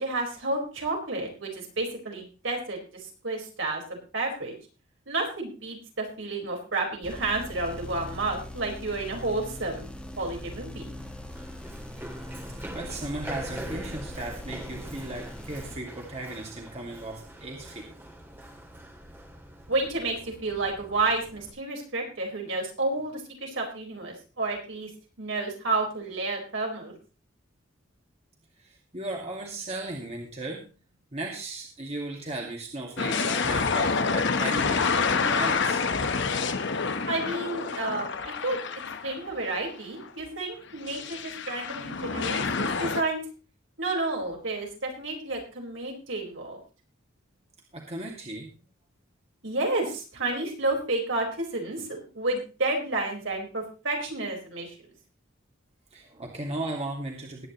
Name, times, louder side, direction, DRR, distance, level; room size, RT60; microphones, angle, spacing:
voice 1, 0.0-2.8 3.2-4.5 5.1-10.9 19.7-24.9 25.2-26.9 37.0-38.1 38.4-38.6 39.0-43.2 43.8-46.6 49.4-51.9 52.1-54.7, right 2 dB, 70° right, 0 dB, 4.6 m, -30 dB
sound 1, 7.0-15.8, left 1 dB, 5° left, 1.6 m, -41 dB
Run, 10.0-21.5, right 1 dB, 10° right, 2.0 m, -44 dB
voice 2, 12.2-17.9 28.6-30.6 31.1-35.8 47.7-48.5 55.9-57.5, right 2 dB, 30° right, 0 dB, 2.1 m, -36 dB
sound 2, 33.0-39.5 40.0-40.1 40.9-43.0, left 5 dB, 60° left, 1.1 m, -28 dB
20.0 x 9.5 x 3.0 m, 0.34 s
head